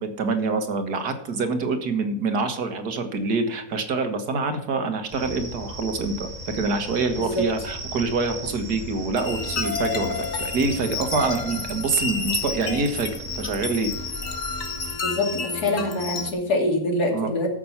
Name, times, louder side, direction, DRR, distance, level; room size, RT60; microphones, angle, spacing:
voice 1, 0.0-13.9 17.1-17.3, right 3 dB, 85° right, 7 dB, 2.0 m, -26 dB
sound 1, 5.1-15.0, right 1 dB, 25° right, 5.2 m, -37 dB
sound 2, 9.2-16.3, left 4 dB, 55° left, 1.8 m, -30 dB
voice 2, 15.0-17.5, left 1 dB, 80° left, 1 dB, 3.2 m, -25 dB
14.0 x 6.3 x 5.7 m, 0.79 s
omnidirectional pair, 1.6 m